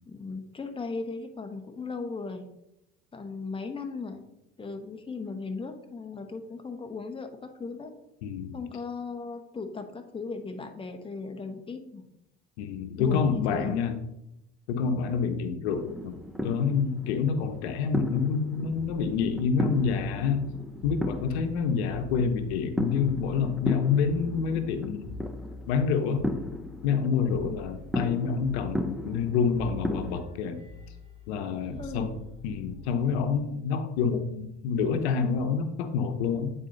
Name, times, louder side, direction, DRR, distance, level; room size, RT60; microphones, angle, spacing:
voice 1, 0.0-2.5 3.1-4.3 4.6-7.9 8.5-12.1 13.0-13.8 21.5-21.6 27.4-27.6 31.8-32.1, left 4 dB, 15° left, 5 dB, 1.0 m, -37 dB
voice 2, 8.2-8.6 12.6-13.9 14.7-16.2 16.4-20.5 20.8-25.1 25.7-26.2 26.8-30.6 31.3-32.2 32.4-36.5, left 6 dB, 85° left, 8 dB, 0.8 m, -27 dB
sound 1, 15.7-30.2, left 1 dB, ahead, 0.6 m, -36 dB
sound 2, 18.7-22.7 22.9-27.0 27.3-28.1 28.4-29.3 29.5-33.5 34.7-35.0, left 1 dB, 20° right, 2.3 m, -45 dB
9.0 x 4.1 x 3.9 m, 0.84 s
supercardioid pair, 85°, 32 cm